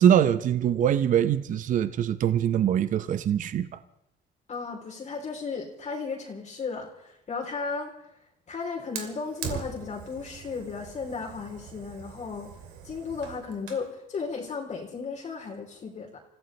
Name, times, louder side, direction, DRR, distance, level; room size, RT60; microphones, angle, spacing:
voice 1, 0.0-3.7, right 9 dB, 50° right, 12 dB, 0.7 m, -23 dB
voice 2, 4.5-7.9 8.5-12.5 12.8-16.2, left 4 dB, 45° left, -2 dB, 3.2 m, -35 dB
Fire, 8.9-13.9, right 7 dB, 85° right, 2.7 m, -41 dB
28.5 x 15.5 x 3.2 m, 0.81 s
cardioid pair, 110°, 17 cm